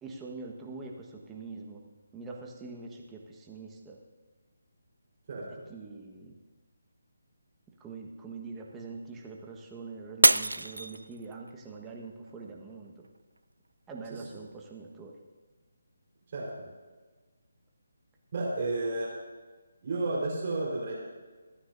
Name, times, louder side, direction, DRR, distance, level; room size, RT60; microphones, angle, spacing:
voice 1, 0.0-1.8 2.1-4.0 5.5-6.4 7.8-13.0 13.9-15.2, right 4 dB, 10° right, -1 dB, 1.4 m, -44 dB
Shatter, 10.2-11.5 12.0-12.5 13.0-13.1, right 2 dB, 80° right, 0.4 m, -24 dB
voice 2, 18.3-19.1 19.8-20.9, right 2 dB, 40° right, -4 dB, 4.4 m, -31 dB
27.0 x 10.0 x 2.7 m, 1.4 s
figure-of-eight pair, 150°, 0 cm